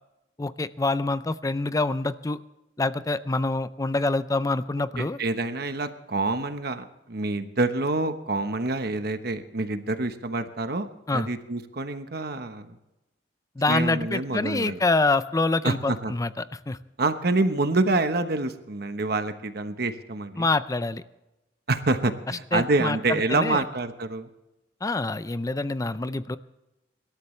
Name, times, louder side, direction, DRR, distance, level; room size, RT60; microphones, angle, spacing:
voice 1, 0.4-2.4 2.8-5.2 11.1-11.3 13.6-16.3 16.7-16.8 20.4-21.0 22.5-23.0 23.3-23.6 24.8-26.4, left 2 dB, 20° left, 14 dB, 0.5 m, -26 dB
voice 2, 5.0-12.8 13.7-14.8 15.6-16.1 17.0-20.5 21.7-24.3, right 2 dB, 60° right, 8 dB, 1.1 m, -27 dB
25.5 x 13.0 x 3.3 m, 0.96 s
head